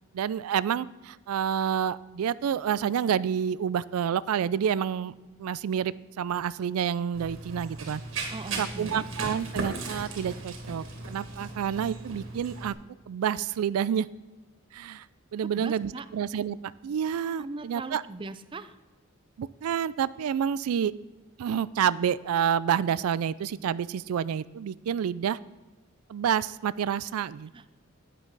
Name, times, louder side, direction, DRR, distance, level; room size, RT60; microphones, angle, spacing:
voice 1, 0.1-5.1 5.4-12.7 13.1-14.1 14.7-15.1 15.3-16.6 16.8-18.0 19.4-20.9 21.4-25.4 26.1-27.5, right 8 dB, 85° right, 18 dB, 0.3 m, -29 dB
Run, 7.1-12.7, right 3 dB, 70° right, 2.1 m, -37 dB
voice 2, 8.3-9.1 15.4-16.1 17.4-18.8 27.5-27.8, right 2 dB, 25° right, 12 dB, 0.4 m, -39 dB
11.0 x 9.3 x 3.9 m, 1.1 s
head